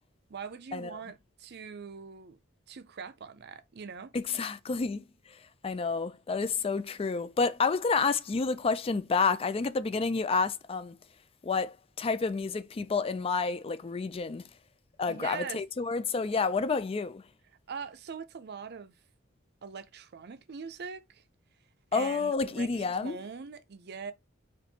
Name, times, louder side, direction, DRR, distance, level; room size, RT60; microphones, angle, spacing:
voice 1, 0.3-2.4 2.7-4.1 15.1-15.6 17.7-18.9 19.6-21.2 21.9-24.1, right 6 dB, 55° right, 0.5 m, -42 dB
voice 2, 4.1-5.0 5.6-11.0 11.4-14.5 15.0-17.2 21.9-23.2, left 4 dB, 30° left, 0.3 m, -29 dB
4.4 x 2.6 x 4.1 m
head